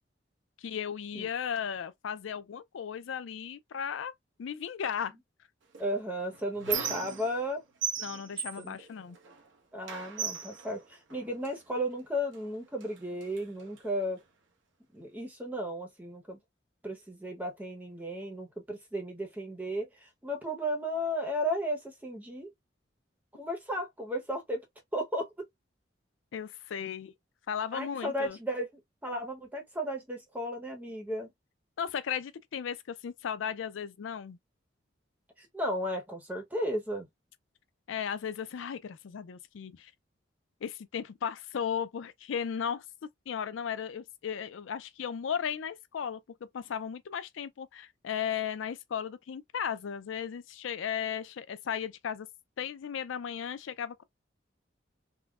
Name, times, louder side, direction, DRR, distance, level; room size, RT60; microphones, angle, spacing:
voice 1, 0.6-4.1 4.4-5.2 8.0-9.2 26.3-27.1 27.5-28.4 31.8-34.4 37.9-39.9 40.6-42.9 43.3-46.2 46.5-52.3 52.6-54.0, left 8 dB, 80° left, 0.4 m, -35 dB
Squeak, 5.7-7.5 7.8-9.5 9.9-11.6 12.3-12.5 12.8-13.8, right 6 dB, 75° right, 0.9 m, -37 dB
voice 2, 5.8-7.6 8.6-8.8 9.7-14.2 14.9-16.4 16.8-22.5 23.3-24.6 24.9-25.5 27.7-28.7 29.0-31.3 35.4-37.1, equal, 10° right, 0.9 m, -34 dB
3.7 x 2.1 x 2.3 m
head